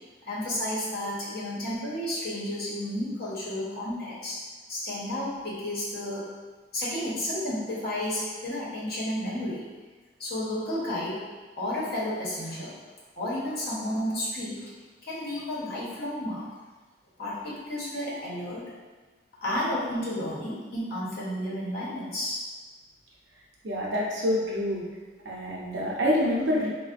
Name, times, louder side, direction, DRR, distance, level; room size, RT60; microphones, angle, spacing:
voice 1, 0.2-4.4 4.7-6.3 6.7-9.7 10.2-11.2 11.6-12.7 13.2-14.7 15.0-16.5 17.2-18.6 19.4-22.4, left 1 dB, 55° left, -7 dB, 0.9 m, -32 dB
voice 2, 23.6-24.8 25.3-26.7, equal, 75° right, -4 dB, 0.7 m, -26 dB
3.9 x 2.1 x 2.5 m, 1.3 s
head